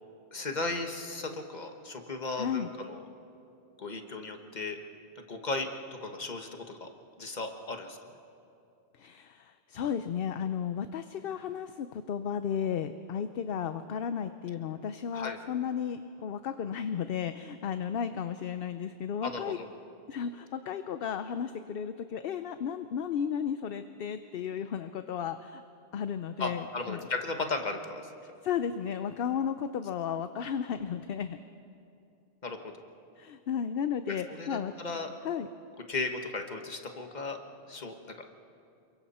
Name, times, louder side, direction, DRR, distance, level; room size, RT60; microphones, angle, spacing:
voice 1, 0.3-3.0 3.8-4.8 5.2-5.7 6.0-6.9 7.2-8.0 15.1-15.4 19.2-19.7 26.4-28.0 32.4-32.7 34.3-35.1 35.9-37.4 37.7-38.0, left 3 dB, 40° left, 5 dB, 1.5 m, -35 dB
voice 2, 2.4-2.7 9.0-19.6 20.1-25.6 25.9-27.0 28.4-31.4 33.2-34.7 35.2-35.5, left 8 dB, 65° left, 10 dB, 0.8 m, -34 dB
28.0 x 23.0 x 4.3 m, 2.7 s
omnidirectional pair, 1.1 m